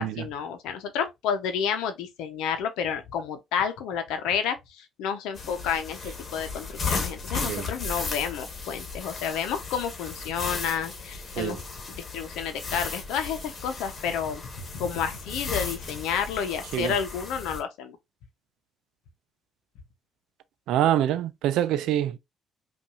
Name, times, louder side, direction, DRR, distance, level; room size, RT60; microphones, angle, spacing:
voice 1, 0.0-11.6 12.1-18.0, left 7 dB, 90° left, 0.8 m, -30 dB
sound 1, 5.4-17.6, left 4 dB, 45° left, 1.3 m, -35 dB
voice 2, 20.7-22.2, right 11 dB, 85° right, 0.5 m, -25 dB
5.4 x 2.6 x 2.5 m
cardioid pair, 85°, 0 cm